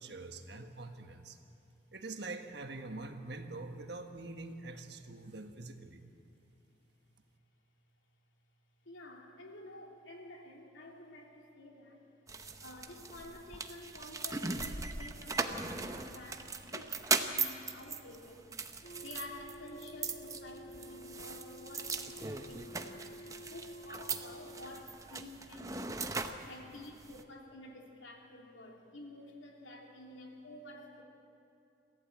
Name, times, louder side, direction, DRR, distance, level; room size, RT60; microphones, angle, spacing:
voice 1, 0.0-1.4 1.9-6.0, right 2 dB, 60° right, 6 dB, 1.5 m, -44 dB
voice 2, 8.8-12.0 12.6-18.5 19.0-23.1 23.4-26.1 26.4-31.0, left 1 dB, 85° left, 1 dB, 3.0 m, -50 dB
sound 1, 12.3-27.2, right 4 dB, 15° right, 0.8 m, -39 dB
sound 2, 18.8-24.8, equal, 50° left, 1.5 m, -51 dB
23.5 x 15.0 x 8.7 m, 2.7 s
head